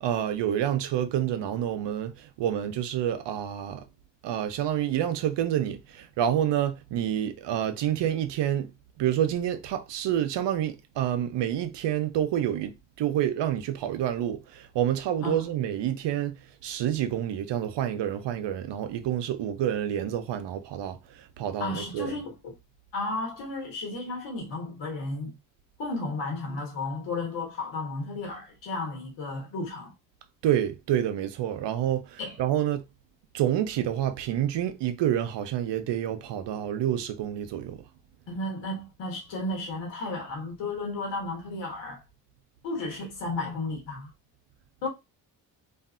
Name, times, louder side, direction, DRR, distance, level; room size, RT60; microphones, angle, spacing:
voice 1, 0.0-3.8 4.2-8.7 9.0-16.4 16.6-22.1 30.4-32.8 33.3-37.8, right 10 dB, 70° right, 0.6 m, -28 dB
voice 2, 21.6-22.5 22.9-25.4 25.8-29.9 32.2-32.4 38.3-42.0 42.6-44.1 44.8-44.9, left 2 dB, 80° left, 1.3 m, -33 dB
2.6 x 2.4 x 2.4 m
supercardioid pair, 55°, 44 cm